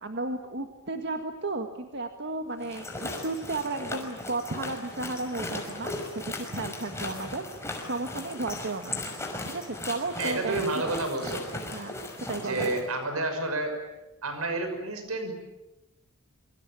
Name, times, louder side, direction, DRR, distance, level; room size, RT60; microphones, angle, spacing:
voice 1, 0.0-7.4 7.8-9.0 9.4-10.6 11.7-12.7, right 2 dB, 55° right, 5 dB, 1.8 m, -34 dB
sound 1, 2.6-12.8, left 2 dB, 15° left, 5.6 m, -37 dB
voice 2, 10.2-11.5 12.4-13.8 14.2-15.3, right 2 dB, 90° right, 7 dB, 6.0 m, -30 dB
27.0 x 24.5 x 8.9 m, 1.0 s
head